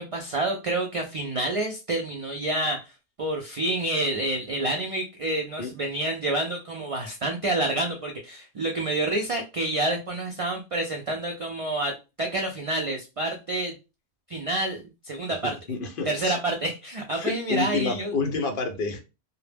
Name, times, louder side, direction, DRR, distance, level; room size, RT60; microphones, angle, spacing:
voice 1, 0.0-2.9 3.2-13.7 14.3-15.5 16.0-18.1, right 1 dB, 65° right, 0.3 m, -28 dB
voice 2, 15.7-16.4 17.2-19.0, left 4 dB, 60° left, 0.7 m, -28 dB
2.0 x 2.0 x 3.2 m
omnidirectional pair, 1.1 m